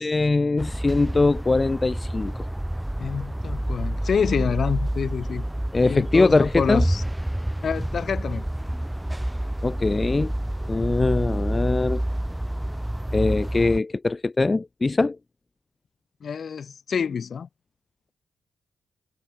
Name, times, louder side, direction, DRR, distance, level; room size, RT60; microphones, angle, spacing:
voice 1, 0.0-2.3 5.7-6.8 9.6-10.3 10.7-12.0 13.1-15.2, left 3 dB, 30° left, 1.2 m, -22 dB
sound 1, 0.6-13.8, right 1 dB, 5° right, 7.4 m, -28 dB
voice 2, 3.0-5.4 5.8-7.0 7.6-8.4 16.2-17.5, left 6 dB, 60° left, 7.4 m, -27 dB
cardioid pair, 75°, 0 cm